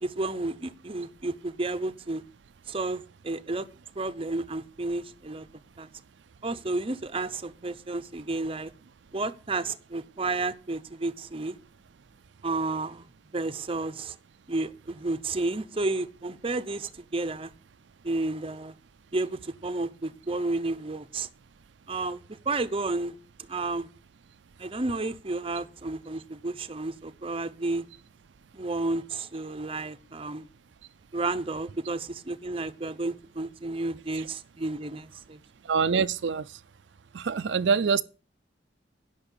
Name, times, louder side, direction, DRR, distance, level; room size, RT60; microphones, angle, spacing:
voice 1, 0.0-2.2 2.7-3.7 4.0-5.5 5.8-5.9 6.4-8.7 9.1-11.6 12.4-14.2 14.5-17.5 18.0-18.8 19.1-21.3 21.9-23.9 24.6-27.9 28.5-30.5 31.1-35.4, right 2 dB, 30° right, 0.7 m, -31 dB
voice 2, 35.6-36.5 37.1-38.0, right 5 dB, 85° right, 0.5 m, -25 dB
10.5 x 6.1 x 8.4 m
head